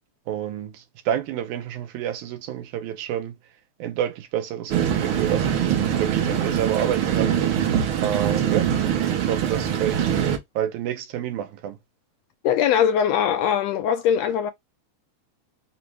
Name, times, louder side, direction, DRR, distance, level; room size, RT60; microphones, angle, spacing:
voice 1, 0.3-3.4 3.8-7.4 8.0-8.7 9.2-10.2 10.6-11.8, right 10 dB, 85° right, 2.2 m, -28 dB
sound 1, 4.7-10.4, right 9 dB, 70° right, 1.3 m, -23 dB
voice 2, 12.4-14.5, left 8 dB, 80° left, 1.6 m, -21 dB
5.0 x 2.1 x 4.5 m
omnidirectional pair, 3.4 m